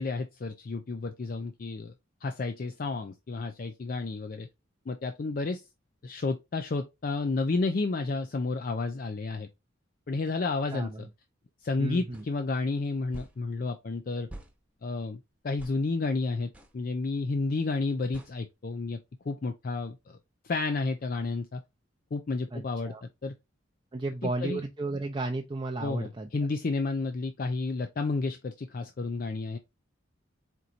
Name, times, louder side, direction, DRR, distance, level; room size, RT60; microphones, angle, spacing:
voice 1, 0.0-1.9 2.2-4.5 4.9-5.7 6.0-9.5 10.1-11.1 11.6-14.3 14.8-19.0 19.3-20.2 20.4-21.6 22.1-23.3 24.4-24.6 25.8-29.6, left 3 dB, 45° left, 0.4 m, -31 dB
voice 2, 10.7-11.1 11.8-12.2 22.5-23.0 23.9-26.3, right 2 dB, 25° right, 0.5 m, -33 dB
sound 1, 12.1-12.3 13.1-13.4 14.3-14.5 15.6-15.8 16.5-16.7 18.1-18.3, right 1 dB, 5° right, 0.9 m, -45 dB
4.5 x 3.9 x 2.5 m
head